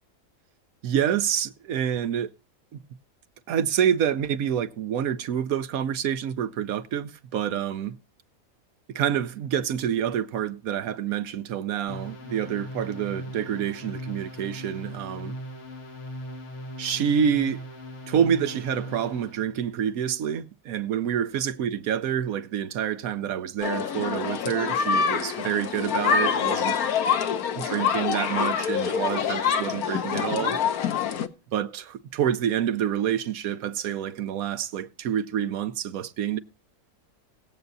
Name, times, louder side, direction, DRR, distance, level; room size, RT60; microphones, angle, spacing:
voice 1, 0.8-2.3 2.7-2.8 3.5-7.9 8.9-15.4 16.8-17.6 18.1-26.8 27.6-30.6 31.5-36.4, right 9 dB, 75° right, 1.1 m, -27 dB
sound 1, 11.9-19.4, left 1 dB, 55° left, 2.4 m, -39 dB
sound 2, 23.6-31.3, left 7 dB, 90° left, 1.4 m, -26 dB
20.0 x 7.8 x 2.7 m
omnidirectional pair, 1.5 m